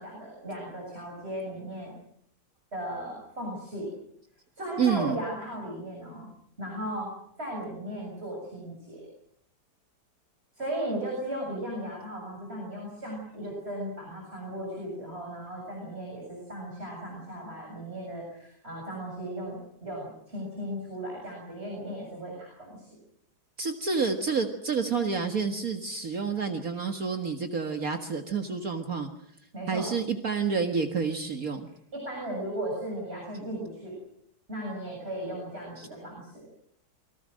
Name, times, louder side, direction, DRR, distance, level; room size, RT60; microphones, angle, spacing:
voice 1, 0.0-1.9 2.7-3.9 4.5-6.3 6.6-7.1 7.4-9.0 10.5-22.9 29.5-29.9 31.9-34.0 34.5-36.5, right 1 dB, 35° right, -1 dB, 7.4 m, -36 dB
voice 2, 4.8-5.2 23.6-29.1 29.7-31.6 35.8-35.9, right 5 dB, 55° right, 5 dB, 2.1 m, -29 dB
29.0 x 23.5 x 6.5 m, 0.70 s
omnidirectional pair, 1.8 m